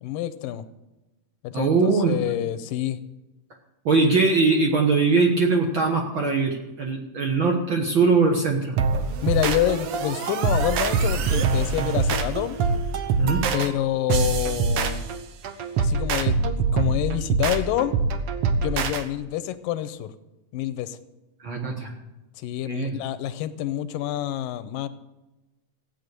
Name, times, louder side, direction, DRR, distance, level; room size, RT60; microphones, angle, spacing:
voice 1, 0.0-0.6 1.4-3.0 9.2-12.6 13.5-15.0 15.8-18.0 18.6-20.1 20.5-21.0 22.4-24.9, left 13 dB, 85° left, 13 dB, 2.3 m, -27 dB
voice 2, 1.5-2.2 3.8-8.8 13.2-13.4 21.4-21.9 22.6-23.0, right 4 dB, 55° right, 1 dB, 1.5 m, -21 dB
sound 1, 8.8-19.0, right 4 dB, 80° right, 1.3 m, -24 dB
15.5 x 9.3 x 6.6 m, 1.0 s
omnidirectional pair, 4.0 m